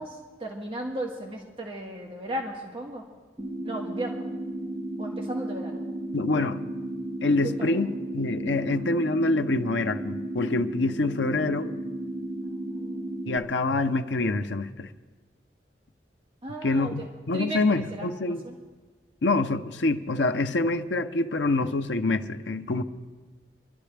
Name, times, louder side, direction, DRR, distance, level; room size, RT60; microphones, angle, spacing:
voice 1, 0.0-3.1 3.6-4.3 5.0-5.8 7.4-7.8 12.4-13.2 16.4-18.5, right 1 dB, 30° right, -2 dB, 1.6 m, -36 dB
sound 1, 3.4-13.4, right 1 dB, 5° right, 1.9 m, -34 dB
voice 2, 6.1-6.6 7.2-7.9 8.1-11.7 13.3-14.9 16.6-18.4 19.2-22.8, left 2 dB, 85° left, 8 dB, 0.7 m, -26 dB
24.5 x 12.5 x 3.4 m, 1.3 s
head